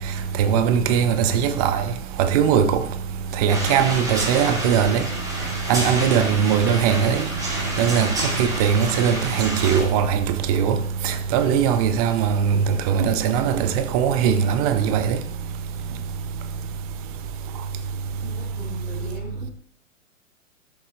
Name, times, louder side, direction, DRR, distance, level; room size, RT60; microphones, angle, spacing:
voice 1, 0.4-1.8 2.2-2.8 3.4-5.0 5.7-7.3 7.8-8.1 8.4-10.8 11.0-15.2, right 8 dB, 30° right, 0.6 m, -20 dB
sound 1, 3.5-9.8, right 1 dB, 10° right, 2.3 m, -29 dB
voice 2, 18.2-19.5, left 1 dB, 30° left, 3.0 m, -39 dB
12.5 x 6.7 x 2.8 m
figure-of-eight pair, 110°, 40 cm